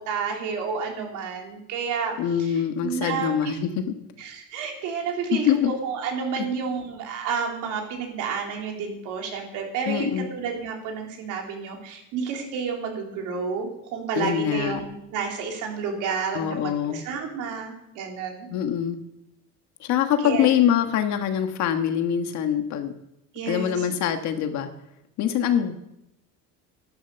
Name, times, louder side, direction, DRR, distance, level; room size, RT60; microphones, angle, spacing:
voice 1, 0.1-2.5 2.8-3.5 4.2-18.5 20.2-20.5 23.3-23.8, right 5 dB, 70° right, 1 dB, 3.5 m, -30 dB
voice 2, 2.2-4.0 5.3-5.7 6.4-6.5 9.8-10.3 14.1-14.8 16.3-17.0 18.5-19.0 19.8-22.9 23.5-24.7 25.2-25.7, left 9 dB, 60° left, 7 dB, 1.5 m, -24 dB
12.0 x 11.5 x 6.8 m, 0.84 s
cardioid pair, 155°, 32 cm